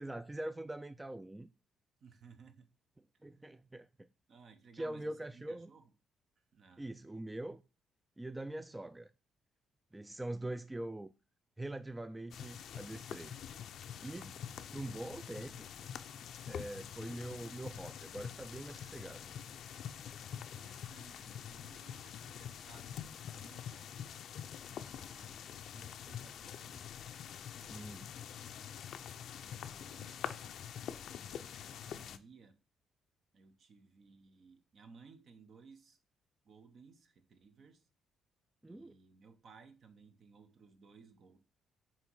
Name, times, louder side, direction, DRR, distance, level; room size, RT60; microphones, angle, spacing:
voice 1, 0.0-1.5 3.2-4.1 4.7-5.7 6.8-7.6 8.2-9.1 9.9-11.1 11.6-13.4 14.0-14.4 14.7-15.7 16.5-19.3 27.7-28.1 38.6-39.0, right 1 dB, 15° right, 0.3 m, -43 dB
voice 2, 2.0-2.7 3.3-3.5 4.3-5.9 6.5-6.9 13.9-14.5 20.2-24.1 24.7-26.9 27.3-28.7 29.4-30.6 31.1-32.5 33.3-36.0 36.4-37.9 38.7-41.4, right 5 dB, 60° right, 1.0 m, -60 dB
sound 1, 12.3-32.2, left 9 dB, 70° left, 0.4 m, -46 dB
sound 2, 17.6-18.4 18.7-19.4 19.7-20.4 20.7-22.4 22.7-23.4, left 1 dB, 75° right, 2.0 m, -71 dB
7.6 x 3.0 x 4.7 m
cardioid pair, 90°, 0 cm